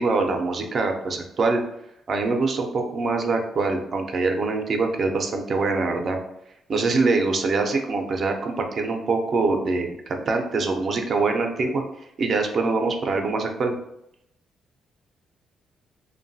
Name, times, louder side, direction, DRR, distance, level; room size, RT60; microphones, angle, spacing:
voice 1, 0.0-1.6 2.1-6.2 6.7-13.7, right 3 dB, 50° right, 4 dB, 0.4 m, -24 dB
2.9 x 2.2 x 2.6 m, 0.80 s
cardioid pair, 90°, 0 cm